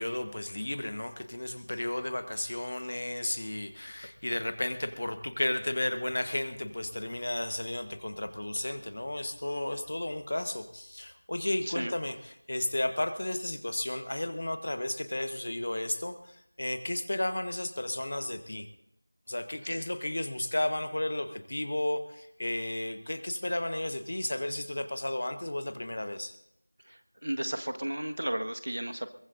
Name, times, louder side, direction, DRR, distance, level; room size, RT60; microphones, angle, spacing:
voice 1, 0.0-18.7 19.3-26.3, left 1 dB, 45° left, 9 dB, 1.3 m, -33 dB
voice 2, 26.9-29.1, right 1 dB, 70° right, 8 dB, 1.5 m, -34 dB
22.5 x 19.5 x 2.6 m, 0.79 s
figure-of-eight pair, 175°, 0 cm